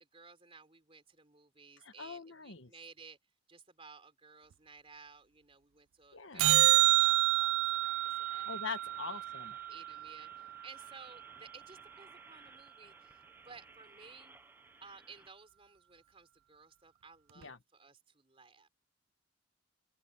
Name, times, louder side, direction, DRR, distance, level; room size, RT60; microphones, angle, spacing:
voice 1, 0.0-3.2 3.5-8.5 9.0-9.2 9.7-14.4 14.8-18.7, right 4 dB, 30° right, 3.7 m, -56 dB
voice 2, 1.8-2.7 6.1-6.5 8.5-9.5 17.3-17.6, left 5 dB, 80° left, 1.5 m, -43 dB
sound 1, 6.4-10.9 17.4-17.5, right 16 dB, 85° right, 0.3 m, -29 dB
sound 2, 7.3-15.3, right 2 dB, 10° right, 0.8 m, -59 dB
open air
head